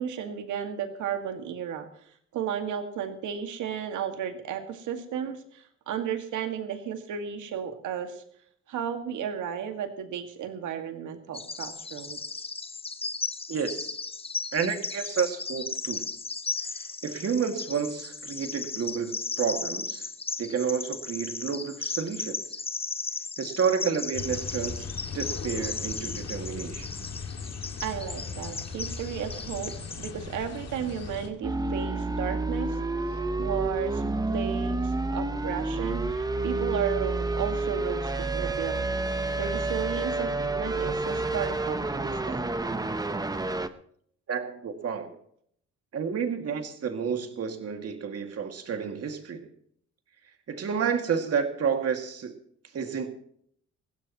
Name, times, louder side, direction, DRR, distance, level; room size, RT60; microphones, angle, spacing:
voice 1, 0.0-1.9 2.3-8.2 8.7-12.2 27.8-32.8 33.4-34.0 34.3-38.9 39.4-42.5, right 8 dB, 80° right, 6 dB, 2.0 m, -34 dB
Bird vocalization bird call bird song, 11.3-30.1, left 4 dB, 20° left, 0.7 m, -36 dB
voice 2, 13.5-14.0 14.5-16.0 17.0-20.1 20.4-22.6 23.4-24.9 25.1-26.9 44.3-45.2 45.9-49.5 50.5-52.3 52.7-53.1, right 6 dB, 55° right, 5 dB, 2.3 m, -30 dB
sound 1, 24.1-31.3, left 5 dB, 55° left, 2.2 m, -38 dB
sound 2, 31.4-43.7, right 2 dB, 15° right, 0.8 m, -29 dB
20.5 x 15.5 x 3.0 m, 0.66 s
cardioid pair, 90°, 30 cm